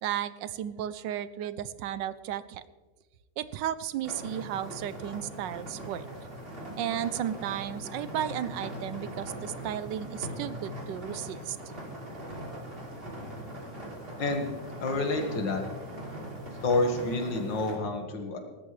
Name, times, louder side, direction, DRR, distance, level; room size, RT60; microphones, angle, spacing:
voice 1, 0.0-2.6 3.4-6.1 6.8-11.6, right 11 dB, 90° right, 15 dB, 1.3 m, -34 dB
sound 1, 4.0-17.8, equal, 30° right, 3.0 m, -40 dB
voice 2, 14.8-15.6 16.6-18.4, left 2 dB, 85° left, 3 dB, 2.3 m, -28 dB
18.5 x 14.0 x 3.2 m, 1.3 s
omnidirectional pair, 1.9 m